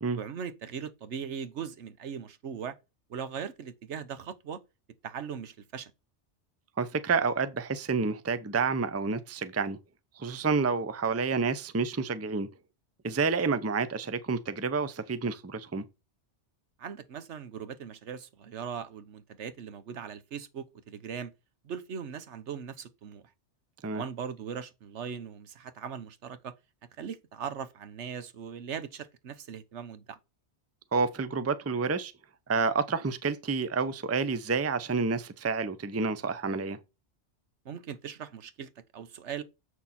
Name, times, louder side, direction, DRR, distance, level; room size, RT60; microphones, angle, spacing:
voice 1, 0.1-2.7 3.1-4.6 5.0-5.9 16.8-21.3 21.6-23.2 23.9-26.5 27.0-30.2 37.6-39.4, right 7 dB, 75° right, 1.2 m, -39 dB
voice 2, 6.8-9.8 10.2-12.5 13.0-15.8 23.8-24.0 30.9-32.1 32.5-36.8, right 4 dB, 20° right, 0.5 m, -29 dB
7.5 x 6.3 x 4.2 m
omnidirectional pair, 1.2 m